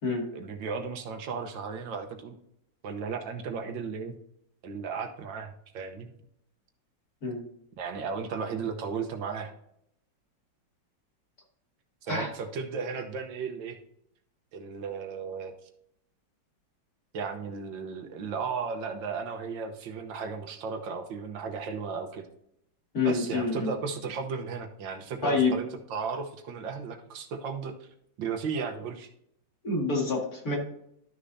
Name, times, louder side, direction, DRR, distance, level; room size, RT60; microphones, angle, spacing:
voice 1, 0.3-2.4 2.8-4.1 4.6-6.1 7.8-9.5 12.0-13.8 14.5-15.5 17.1-22.3 23.0-27.9 28.2-29.1, right 5 dB, 80° right, 6 dB, 1.7 m, -35 dB
voice 2, 22.9-23.7 25.2-25.6 29.6-30.6, left 3 dB, 50° left, -1 dB, 2.6 m, -27 dB
12.5 x 6.6 x 2.7 m, 0.73 s
omnidirectional pair, 2.0 m